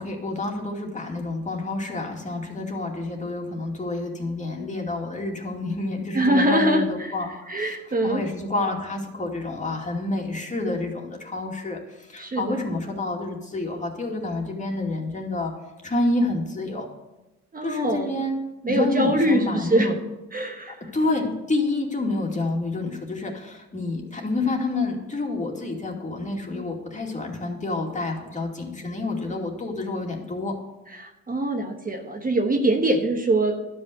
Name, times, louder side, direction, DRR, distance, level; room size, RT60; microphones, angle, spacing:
voice 1, 0.0-7.8 8.0-15.5 15.8-16.9 17.6-18.4 18.7-19.9 20.9-30.5, left 2 dB, 25° left, 1 dB, 2.5 m, -28 dB
voice 2, 6.1-7.1 7.5-8.2 12.2-12.7 17.5-18.2 18.6-19.9 20.3-20.8 31.0-33.6, right 1 dB, 30° right, 3 dB, 1.3 m, -23 dB
12.0 x 5.6 x 7.9 m, 0.99 s
cardioid pair, 90°, 30 cm